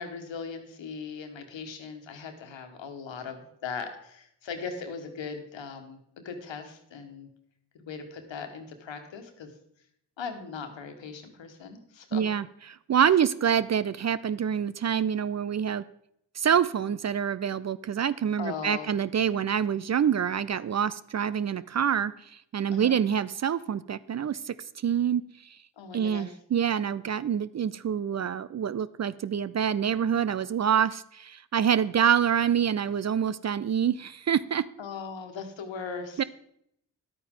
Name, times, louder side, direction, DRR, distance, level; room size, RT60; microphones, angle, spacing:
voice 1, 0.0-7.3 7.7-9.5 10.2-12.2 18.4-18.9 22.7-23.0 25.8-26.3 34.8-36.2, left 5 dB, 75° left, 6 dB, 1.5 m, -39 dB
voice 2, 12.1-12.5 12.9-15.8 16.4-24.6 24.8-25.6 25.9-34.7 36.2-36.3, right 8 dB, 40° right, 16 dB, 0.4 m, -26 dB
11.0 x 9.1 x 3.7 m, 0.73 s
supercardioid pair, 40°, 45 cm